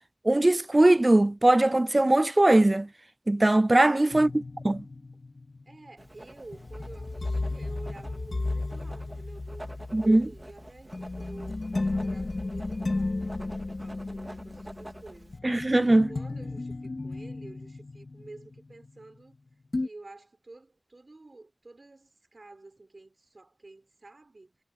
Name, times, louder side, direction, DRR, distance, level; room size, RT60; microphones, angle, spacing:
voice 1, 0.2-2.9 3.3-4.3 4.6-4.8 9.9-10.3 15.4-16.1, right 2 dB, 45° right, 0.3 m, -20 dB
voice 2, 3.7-4.2 5.6-19.4 19.8-24.5, right 2 dB, 80° right, 4.6 m, -50 dB
sound 1, 4.1-19.4 19.7-19.9, left 2 dB, 85° left, 2.1 m, -34 dB
Writing, 6.0-15.4, right 1 dB, 30° right, 3.7 m, -48 dB
wide cardioid pair, 50°, 0 cm